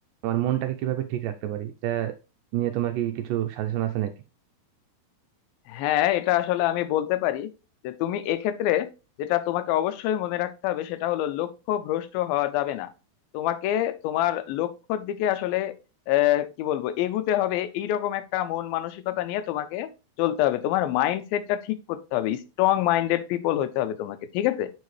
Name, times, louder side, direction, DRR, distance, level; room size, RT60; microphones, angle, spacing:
voice 1, 0.2-2.2 2.5-4.1, right 13 dB, 85° right, 1.9 m, -27 dB
voice 2, 5.7-7.5 7.8-8.9 9.2-12.9 13.3-15.8 16.1-19.9 20.2-24.7, left 13 dB, 85° left, 2.4 m, -26 dB
8.2 x 4.7 x 3.1 m
omnidirectional pair, 4.2 m